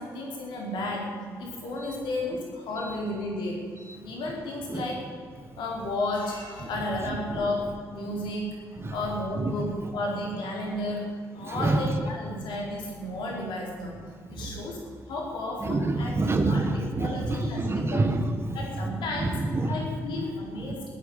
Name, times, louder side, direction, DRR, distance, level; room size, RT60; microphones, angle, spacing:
voice 1, 0.0-3.6 4.0-5.0 5.6-8.6 8.9-14.0 14.3-14.8 15.1-16.2 16.4-16.6 17.0-18.1 18.5-19.4 19.7-20.8, left 2 dB, 75° left, -1 dB, 4.7 m, -32 dB
voice 2, 11.4-11.8 14.3-14.5 15.6-18.6 19.2-19.8, right 2 dB, 30° right, 6 dB, 1.8 m, -27 dB
15.5 x 9.7 x 9.2 m, 2.1 s
hypercardioid pair, 50°, 8 cm